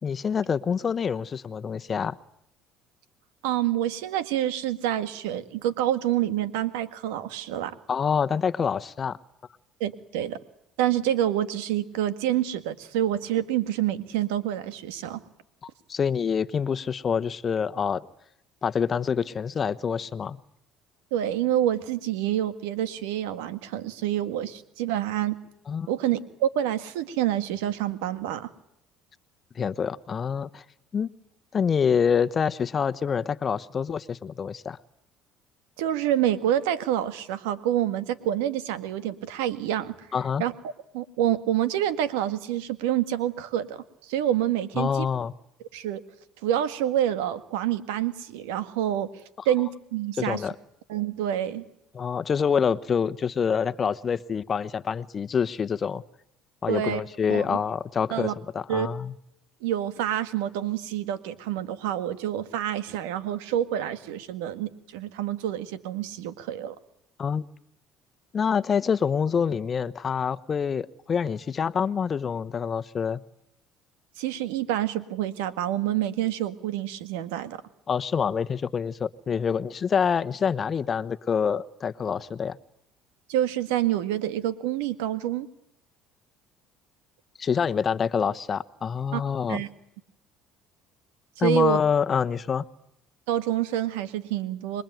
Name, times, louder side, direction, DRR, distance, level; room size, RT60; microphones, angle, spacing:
voice 1, 0.0-2.2 7.9-9.2 15.9-18.1 18.6-20.4 25.7-25.9 29.5-30.6 30.9-31.1 31.5-34.8 40.1-40.4 44.8-45.3 50.2-50.5 51.9-56.0 56.6-59.1 67.2-67.5 68.3-73.2 77.9-82.6 87.4-89.6 91.4-92.6, left 6 dB, 35° left, 13 dB, 1.1 m, -26 dB
voice 2, 3.4-7.8 9.8-10.4 10.8-15.2 21.1-25.4 25.9-28.5 35.8-40.1 40.4-40.5 40.9-45.1 45.7-46.0 46.4-49.1 49.5-50.4 50.9-51.7 56.7-57.0 57.3-57.6 58.1-58.3 58.7-58.9 59.6-66.8 74.2-77.6 83.3-85.5 89.1-89.2 89.5-89.7 91.4-91.8 93.3-94.8, right 11 dB, 90° right, 12 dB, 1.8 m, -27 dB
26.5 x 22.0 x 9.3 m, 0.79 s
supercardioid pair, 95°, 0 cm